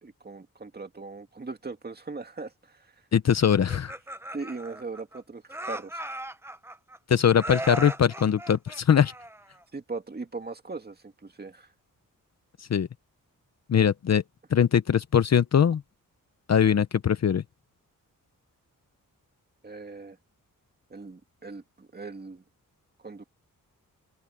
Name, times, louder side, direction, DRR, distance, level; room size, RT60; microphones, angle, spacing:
voice 1, 0.0-2.9 4.3-6.0 9.7-11.7 19.6-20.2 20.9-22.4 23.0-23.2, right 3 dB, 30° right, 2.1 m, -39 dB
voice 2, 3.1-4.0 7.1-9.1 12.6-12.9 13.7-14.2 14.5-15.8 16.5-17.4, left 8 dB, 50° left, 0.7 m, -21 dB
Laughter, 3.5-5.2 5.5-7.0 7.4-9.6, right 1 dB, 5° right, 0.8 m, -37 dB
wide cardioid pair, 155°, 34 cm